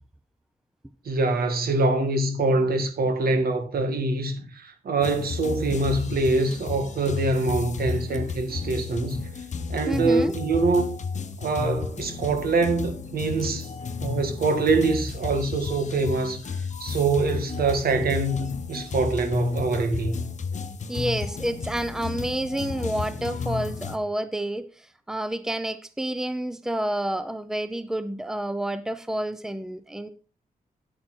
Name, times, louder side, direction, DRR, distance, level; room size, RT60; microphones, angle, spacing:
voice 1, 1.1-9.2 9.7-10.9 11.4-13.7 14.0-20.2, right 3 dB, 80° right, 2.0 m, -24 dB
sound 1, 5.0-24.0, left 5 dB, 50° left, 0.9 m, -33 dB
voice 2, 9.9-10.4 20.9-30.1, right 1 dB, 5° right, 0.6 m, -29 dB
9.1 x 9.0 x 4.3 m
wide cardioid pair, 135°, 15 cm